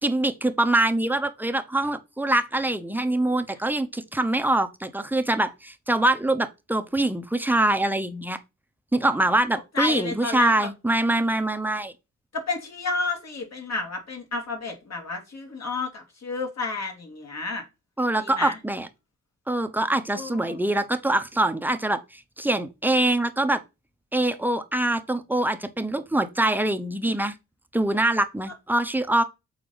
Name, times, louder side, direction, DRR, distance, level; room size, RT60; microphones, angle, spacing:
voice 1, 0.0-8.4 8.9-11.9 18.0-18.9 19.5-23.6 24.1-27.3 27.7-29.2, right 1 dB, 5° right, 0.8 m, -24 dB
voice 2, 9.7-10.7 12.3-17.6 18.2-18.6 20.1-20.6 28.5-28.6, left 3 dB, 55° left, 2.6 m, -31 dB
6.9 x 4.3 x 4.0 m
cardioid pair, 85°, 31 cm